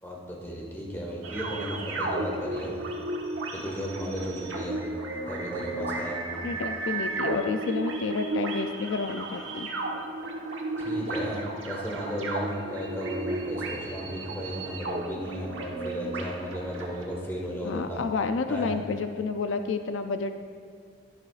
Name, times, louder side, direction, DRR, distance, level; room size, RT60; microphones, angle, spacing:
voice 1, 0.0-2.8 3.5-4.8 5.3-6.4 10.8-18.0 18.5-18.7, equal, 10° left, -3 dB, 1.7 m, -35 dB
sound 1, 1.2-17.0, right 2 dB, 80° right, 1.1 m, -34 dB
voice 2, 6.4-9.7 17.6-20.4, left 4 dB, 75° left, 8 dB, 0.4 m, -30 dB
11.5 x 11.0 x 2.5 m, 2.1 s
head